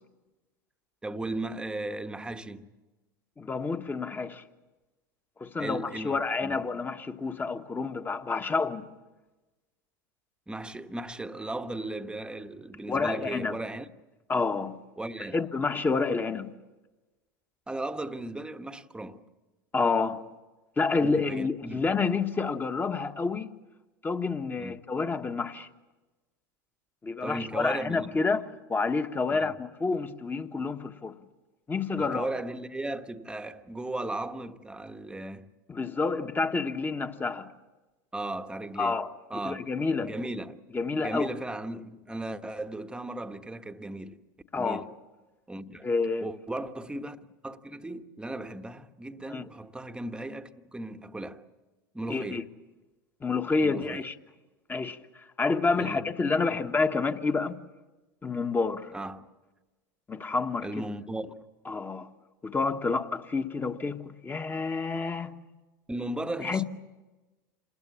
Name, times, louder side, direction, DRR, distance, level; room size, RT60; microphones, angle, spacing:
voice 1, 1.0-2.7 5.5-6.6 10.5-13.9 15.0-15.4 17.7-19.2 21.0-21.8 24.6-24.8 27.2-28.1 29.3-29.5 32.0-35.5 38.1-39.0 39.3-39.6 40.0-40.6 41.0-44.2 44.6-44.9 45.5-45.9 46.2-51.5 51.9-52.4 53.6-54.0 55.8-56.1 56.5-56.6 58.9-59.3 60.6-61.3 65.9-66.6, right 2 dB, 10° right, 1.2 m, -36 dB
voice 2, 3.4-4.4 5.4-8.9 12.9-13.6 14.3-14.8 15.3-16.5 19.7-20.2 20.8-23.5 24.0-25.7 27.0-28.4 28.7-31.1 31.7-32.3 35.7-37.5 38.8-39.1 39.4-40.1 40.7-41.3 44.5-44.8 45.8-46.3 49.3-49.4 52.1-52.4 53.2-54.1 54.7-55.0 55.4-57.6 58.2-58.9 60.1-60.7 61.7-62.1 62.4-65.3 66.4-66.6, left 4 dB, 15° left, 1.4 m, -29 dB
27.5 x 20.0 x 8.5 m
hypercardioid pair, 90°, 11 cm